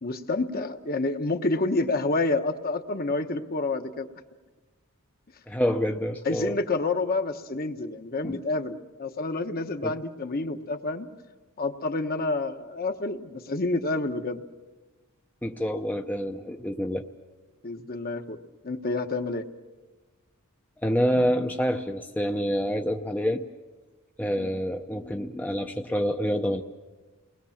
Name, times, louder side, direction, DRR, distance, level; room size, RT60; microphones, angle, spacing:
voice 1, 0.0-4.1 6.2-11.1 11.6-14.4 17.6-18.4 18.6-19.5 24.4-24.5, left 3 dB, 45° left, 7 dB, 1.2 m, -28 dB
voice 2, 5.5-6.6 8.2-8.4 9.8-9.9 15.4-17.1 20.8-23.5 24.2-26.6, equal, 5° left, 3 dB, 0.7 m, -27 dB
29.5 x 20.5 x 7.3 m, 1.3 s
head